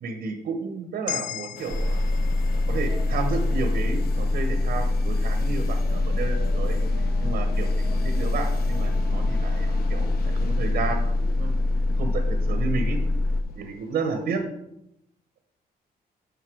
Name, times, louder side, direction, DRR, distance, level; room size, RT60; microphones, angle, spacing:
voice 1, 0.0-2.0 2.5-6.8 7.2-11.5 12.0-13.0 13.5-14.4, right 4 dB, 80° right, 5 dB, 1.2 m, -32 dB
sound 1, 1.1-5.3, left 13 dB, 55° left, 0.4 m, -39 dB
sound 2, 1.6-14.4, left 4 dB, 70° left, 0.9 m, -41 dB
sound 3, 1.7-13.4, left 2 dB, 5° left, 0.5 m, -24 dB
8.2 x 5.4 x 4.7 m, 0.83 s
cardioid pair, 145°, 16 cm